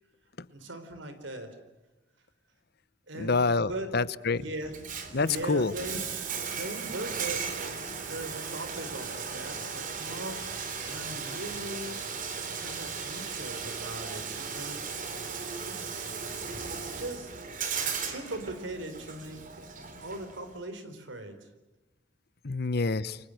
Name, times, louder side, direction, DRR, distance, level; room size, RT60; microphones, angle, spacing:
voice 1, 0.5-1.6 3.1-4.0 4.3-4.7 5.2-6.1 6.5-10.5 10.8-12.0 12.6-14.8 15.6-16.4 16.6-17.3 18.0-21.5, right 1 dB, 85° right, 10 dB, 4.2 m, -40 dB
voice 2, 3.2-4.4 5.1-5.7 22.4-23.2, left 3 dB, 60° left, 16 dB, 0.9 m, -27 dB
Bathtub (filling or washing), 4.6-20.6, right 5 dB, 45° right, 3.3 m, -36 dB
29.5 x 24.5 x 6.5 m, 1.1 s
head